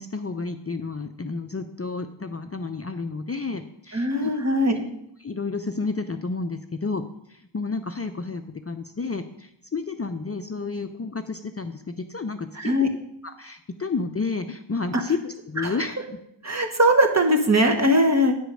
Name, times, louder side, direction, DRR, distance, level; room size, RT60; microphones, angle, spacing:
voice 1, 0.0-4.3 5.2-7.0 7.3-12.8 13.2-16.2, left 4 dB, 30° left, 7 dB, 0.6 m, -31 dB
voice 2, 3.9-4.8 12.6-12.9 14.9-15.0 15.6-15.7 16.4-18.4, equal, 35° right, 4 dB, 1.3 m, -20 dB
9.4 x 5.1 x 6.3 m, 0.76 s
wide cardioid pair, 60°, 48 cm